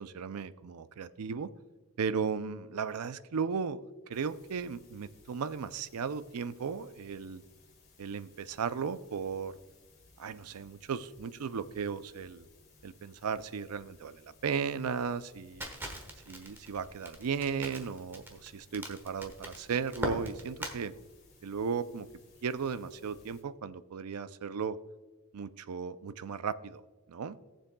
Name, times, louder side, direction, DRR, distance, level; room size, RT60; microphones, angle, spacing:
voice 1, 0.0-1.5 2.0-3.8 4.1-7.4 8.0-9.5 10.2-12.4 12.8-15.7 16.3-21.0 21.4-22.1 22.4-24.8 25.3-26.8 27.1-27.4, right 6 dB, 85° right, 14 dB, 0.5 m, -35 dB
sound 1, 4.1-23.4, left 3 dB, 45° left, 2.5 m, -62 dB
Crackle, 15.6-20.8, equal, 10° right, 1.2 m, -41 dB
18.0 x 7.3 x 2.3 m, 1.2 s
head